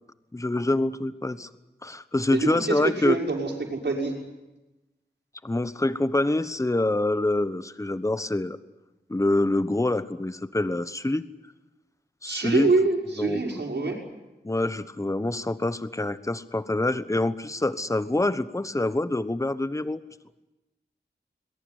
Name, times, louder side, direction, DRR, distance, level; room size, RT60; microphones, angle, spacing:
voice 1, 0.3-1.5 1.8-3.2 5.4-8.6 9.1-11.2 12.2-12.7 13.2-13.4 14.4-20.0, left 2 dB, 15° left, 13 dB, 1.1 m, -26 dB
voice 2, 2.3-4.1 12.3-14.0, right 3 dB, 75° right, 1 dB, 5.8 m, -25 dB
22.5 x 21.0 x 9.7 m, 1.0 s
wide cardioid pair, 80°, 18 cm